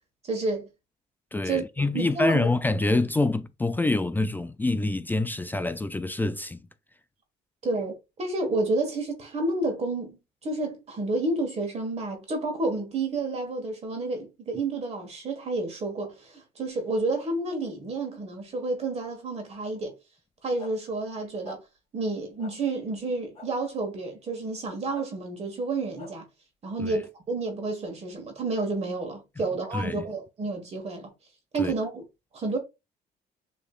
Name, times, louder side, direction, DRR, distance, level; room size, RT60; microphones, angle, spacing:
voice 1, 0.2-0.7 1.4-1.6 1.9-2.5 7.6-19.9 20.4-21.6 21.9-26.3 26.6-31.1 31.5-32.0 32.3-32.6, right 2 dB, 40° right, 1.5 m, -30 dB
voice 2, 1.3-6.6 26.8-27.0 29.7-30.1 31.6-31.7, left 2 dB, 10° left, 0.3 m, -26 dB
sound 1, 20.6-20.7 21.4-21.6 22.4-22.5 23.3-23.5 24.9-25.1 26.0-26.1, left 4 dB, 40° left, 2.6 m, -44 dB
6.7 x 3.2 x 2.4 m
cardioid pair, 110°, 17 cm